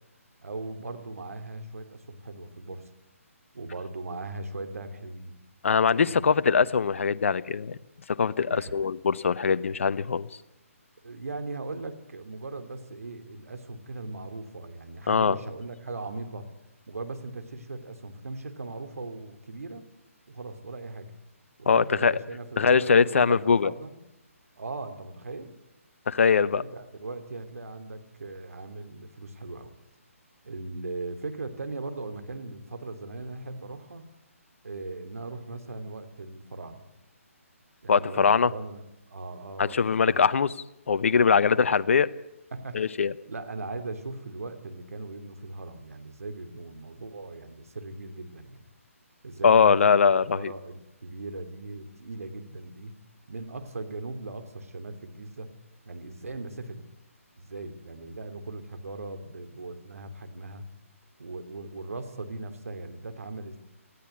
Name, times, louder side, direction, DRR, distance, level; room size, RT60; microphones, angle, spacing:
voice 1, 0.4-2.9 3.5-5.3 6.0-6.6 8.4-8.7 11.0-16.5 16.9-19.8 20.3-21.1 21.6-24.0 24.6-25.6 26.3-29.7 30.4-34.1 34.6-36.9 37.8-38.8 39.1-40.2 41.5-41.6 42.5-42.8 43.3-48.6 49.2-52.9 53.3-55.5 55.9-56.9 57.4-60.7 61.2-63.6, right 3 dB, 75° right, 7 dB, 2.8 m, -39 dB
voice 2, 5.6-7.8 8.1-10.3 15.1-15.4 21.7-22.2 22.6-23.7 26.1-26.6 37.9-38.5 39.6-40.5 40.9-42.1 42.7-43.1 49.4-50.5, left 6 dB, 60° left, 15 dB, 0.8 m, -22 dB
19.0 x 14.5 x 9.5 m, 0.88 s
figure-of-eight pair, 145°, 8 cm